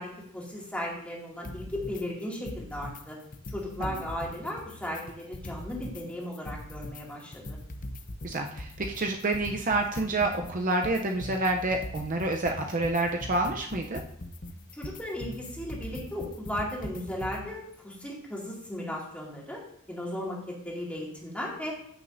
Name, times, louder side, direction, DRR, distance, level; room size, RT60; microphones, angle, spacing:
voice 1, 0.0-3.2 3.5-7.6 14.7-19.6 19.9-21.9, left 1 dB, 5° left, -3 dB, 2.3 m, -36 dB
sound 1, 1.4-2.0 2.3-3.0 3.3-6.0 6.3-17.5, left 1 dB, 40° left, 0.7 m, -41 dB
voice 2, 8.2-14.0, right 2 dB, 40° right, 3 dB, 0.7 m, -28 dB
14.5 x 6.4 x 2.6 m, 0.71 s
head